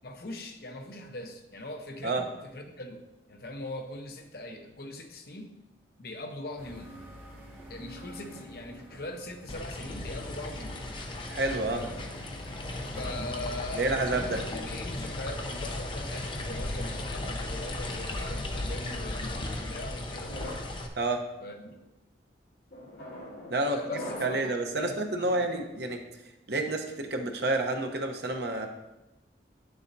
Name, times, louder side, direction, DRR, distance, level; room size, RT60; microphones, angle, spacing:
voice 1, 0.0-5.6 6.0-7.0 7.7-10.8 11.7-12.0 12.9-20.4 21.4-21.7 23.6-25.6, left 1 dB, 55° left, 4 dB, 0.8 m, -41 dB
sound 1, 6.6-19.4, right 1 dB, 10° right, 1.4 m, -51 dB
sound 2, 9.5-20.9, left 1 dB, 25° left, 0.6 m, -36 dB
voice 2, 11.3-11.8 13.7-14.4 21.0-21.2 23.5-23.8 24.2-26.0 26.5-28.7, right 2 dB, 65° right, 3 dB, 0.9 m, -29 dB
sound 3, 16.7-18.1 18.9-19.3 20.1-20.8 21.4-21.7 22.7-24.6, left 1 dB, 70° left, 2.3 m, -43 dB
9.8 x 7.0 x 2.7 m, 0.98 s
head